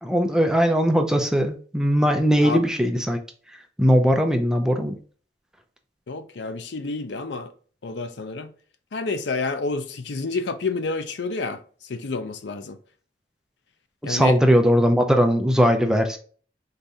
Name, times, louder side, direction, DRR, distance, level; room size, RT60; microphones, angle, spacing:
voice 1, 0.0-3.2 3.8-4.9 14.0-16.2, equal, 5° right, 0.4 m, -19 dB
voice 2, 6.1-7.5 7.8-8.5 8.9-12.8 14.0-14.4, left 3 dB, 65° left, 0.5 m, -29 dB
4.1 x 2.6 x 3.4 m
head